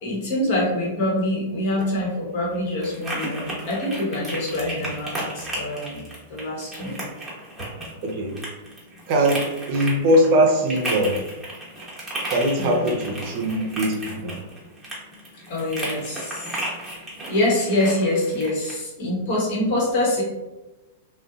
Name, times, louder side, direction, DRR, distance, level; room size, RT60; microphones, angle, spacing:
voice 1, 0.0-6.0 6.3-7.0 12.6-13.0 15.3-16.7 17.3-20.2, left 1 dB, 55° left, -3 dB, 1.0 m, -25 dB
sound 1, 1.6-18.8, right 1 dB, 10° right, 1.0 m, -35 dB
voice 2, 8.0-8.4 9.1-11.2 12.3-14.4, right 1 dB, 50° right, 2 dB, 0.5 m, -21 dB
2.6 x 2.1 x 2.4 m, 1.1 s
hypercardioid pair, 110°, 0 cm